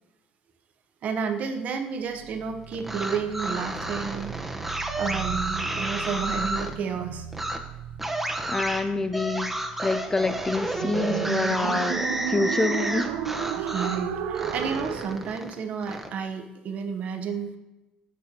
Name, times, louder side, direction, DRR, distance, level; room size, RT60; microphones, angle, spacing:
voice 1, 1.0-4.3 5.0-7.3 13.5-17.6, right 6 dB, 60° right, 0.9 m, -31 dB
sound 1, 2.0-15.2, right 9 dB, 85° right, 0.5 m, -35 dB
sound 2, 2.7-6.7 7.3-7.6 8.0-14.0 14.3-16.1, right 1 dB, 5° right, 0.8 m, -31 dB
voice 2, 8.5-13.1, left 3 dB, 20° left, 0.4 m, -27 dB
8.4 x 6.2 x 2.8 m
supercardioid pair, 90°, 3 cm